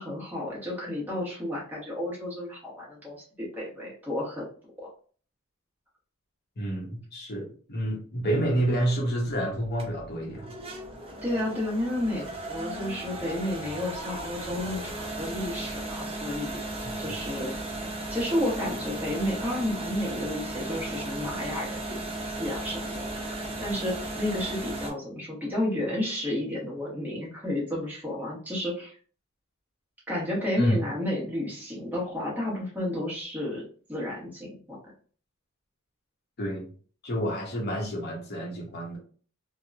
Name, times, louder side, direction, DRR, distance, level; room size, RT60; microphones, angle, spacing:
voice 1, 0.0-4.5 4.8-4.9 11.2-16.5 17.0-17.5 18.1-22.0 22.4-29.0 30.1-33.6 33.9-34.8, left 1 dB, 10° right, -5 dB, 0.9 m, -31 dB
voice 2, 6.6-10.5 16.8-17.0 30.6-30.8 36.4-36.7 37.0-39.0, right 1 dB, 50° left, -1 dB, 0.7 m, -29 dB
sound 1, 8.3-24.9, right 1 dB, 30° right, 0.6 m, -36 dB
2.9 x 2.0 x 2.3 m, 0.44 s
head